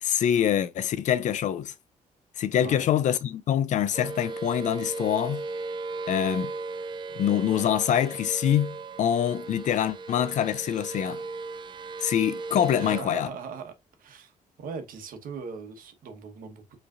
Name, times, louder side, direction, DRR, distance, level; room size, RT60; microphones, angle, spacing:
voice 1, 0.0-1.7 2.4-5.4 6.1-6.5 7.2-11.2 12.0-13.3, left 10 dB, 60° left, 0.4 m, -25 dB
sound 1, 3.9-13.0, right 3 dB, 35° right, 0.3 m, -36 dB
voice 2, 12.8-13.7 14.0-14.3 14.6-16.8, right 5 dB, 85° right, 1.1 m, -39 dB
4.9 x 3.2 x 2.4 m
wide cardioid pair, 170°, 14 cm